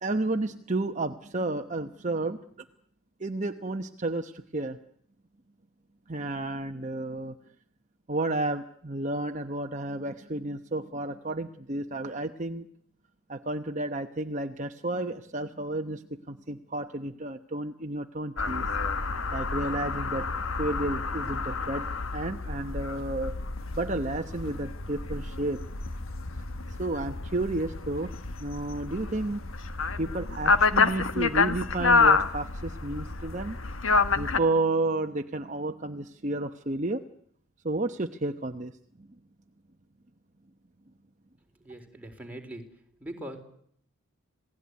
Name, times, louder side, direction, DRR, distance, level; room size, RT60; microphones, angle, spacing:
voice 1, 0.0-2.4 3.2-4.8 6.1-7.4 8.1-12.7 13.3-18.6 19.3-20.3 20.6-23.4 23.7-25.6 26.7-28.1 28.4-29.4 30.0-33.6 34.1-37.0 37.6-38.7 39.0-39.1, right 2 dB, 35° right, 6 dB, 1.0 m, -31 dB
sound 1, 18.4-34.4, left 4 dB, 65° left, 1.4 m, -28 dB
voice 2, 41.6-42.6 43.0-43.4, right 1 dB, 5° right, 1 dB, 3.9 m, -41 dB
27.5 x 18.5 x 9.6 m, 0.67 s
head